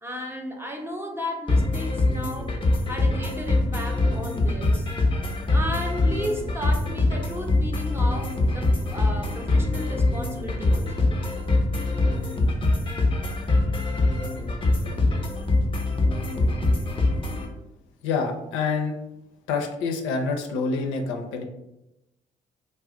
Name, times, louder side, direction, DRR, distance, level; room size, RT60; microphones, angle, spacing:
voice 1, 0.0-2.5 2.9-4.9 5.5-10.9, equal, 10° right, 2 dB, 0.7 m, -34 dB
sound 1, 1.5-17.5, left 2 dB, 25° left, 0.7 m, -23 dB
voice 2, 18.0-19.0 19.5-21.4, left 4 dB, 70° left, 4 dB, 0.5 m, -27 dB
2.4 x 2.1 x 3.6 m, 0.90 s
hypercardioid pair, 45°, 21 cm